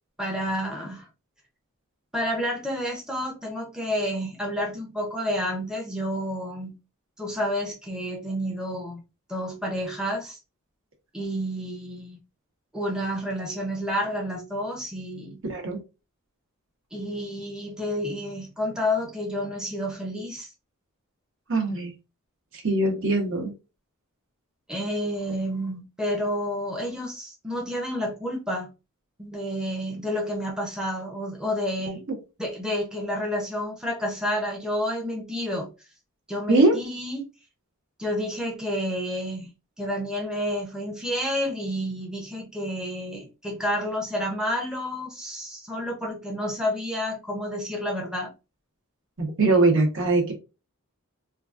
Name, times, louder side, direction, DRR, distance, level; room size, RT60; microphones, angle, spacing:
voice 1, 0.2-1.1 2.1-6.8 7.2-9.0 9.3-10.4 11.1-12.2 12.7-15.4 16.9-20.5 24.7-28.7 29.2-32.0 32.4-35.7 36.3-37.2 38.0-39.5 39.8-48.3, equal, 5° right, 0.6 m, -30 dB
voice 2, 15.4-15.8 21.5-21.9 22.6-23.5 36.5-36.8 49.2-50.3, right 2 dB, 60° right, 1.0 m, -21 dB
3.7 x 2.4 x 2.4 m
head